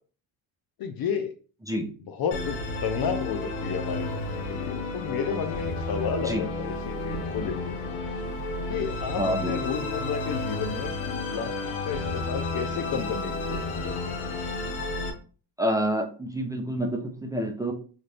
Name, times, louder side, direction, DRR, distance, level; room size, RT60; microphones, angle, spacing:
voice 1, 0.8-1.3 2.0-7.8 8.7-10.9 11.3-11.5 11.8-13.9, left 7 dB, 50° left, 6 dB, 0.6 m, -32 dB
Musical instrument, 2.3-15.1, left 2 dB, 90° left, 0.8 m, -32 dB
voice 2, 9.2-9.5 15.6-17.7, equal, 5° right, 3 dB, 0.7 m, -28 dB
2.6 x 2.5 x 3.3 m, 0.39 s
supercardioid pair, 70°, 47 cm